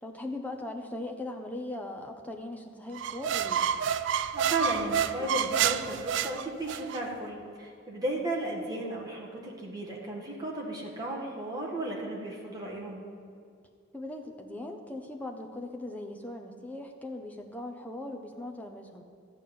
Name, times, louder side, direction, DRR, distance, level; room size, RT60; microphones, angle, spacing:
voice 1, 0.0-3.6 13.9-19.0, left 1 dB, 5° left, 2 dB, 0.7 m, -39 dB
sound 1, 2.9-7.0, right 8 dB, 60° right, 0.3 m, -29 dB
voice 2, 4.3-13.0, right 2 dB, 20° right, -3 dB, 1.6 m, -34 dB
13.0 x 4.9 x 8.7 m, 2.3 s
head